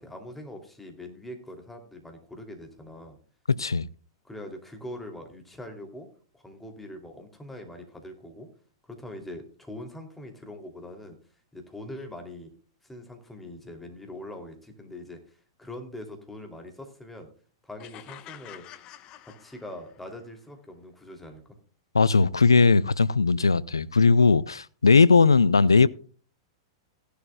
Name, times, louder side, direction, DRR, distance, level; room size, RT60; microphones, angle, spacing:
voice 1, 0.0-3.2 4.2-6.1 6.3-8.5 8.9-11.2 11.5-12.5 12.8-17.3 17.6-18.6 19.2-21.4, left 1 dB, 5° left, 2.9 m, -42 dB
voice 2, 3.5-3.9 21.9-25.9, left 4 dB, 85° left, 0.4 m, -19 dB
sound 1, 17.8-20.1, left 13 dB, 35° left, 0.9 m, -47 dB
16.5 x 11.0 x 2.3 m
figure-of-eight pair, 100°, 2 cm